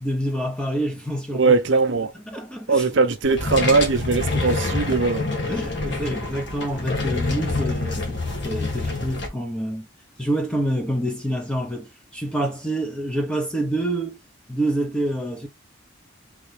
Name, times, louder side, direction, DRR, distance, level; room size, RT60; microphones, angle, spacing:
voice 1, 0.0-1.5 2.3-2.8 5.5-8.2 8.4-9.9 10.2-14.2 14.5-15.5, right 1 dB, 5° left, 0.9 m, -27 dB
voice 2, 1.3-2.1 2.7-5.3, right 4 dB, 65° right, 0.7 m, -20 dB
sound 1, 3.2-9.3, left 2 dB, 60° left, 1.5 m, -26 dB
3.9 x 3.3 x 3.5 m
head